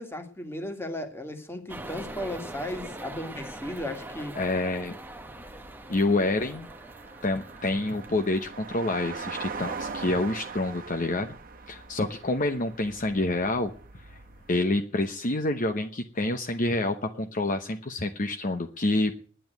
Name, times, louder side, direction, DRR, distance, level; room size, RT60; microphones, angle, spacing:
voice 1, 0.0-4.4, left 1 dB, 10° left, 6 dB, 1.9 m, -35 dB
sound 1, 1.7-8.8, right 1 dB, 10° right, 1.0 m, -42 dB
voice 2, 4.4-5.0 5.9-6.7 7.2-11.4 11.7-13.7 14.5-19.1, left 2 dB, 45° left, 6 dB, 1.0 m, -27 dB
sound 2, 5.0-14.6, right 4 dB, 45° right, 1.3 m, -41 dB
10.5 x 9.3 x 9.2 m, 0.43 s
head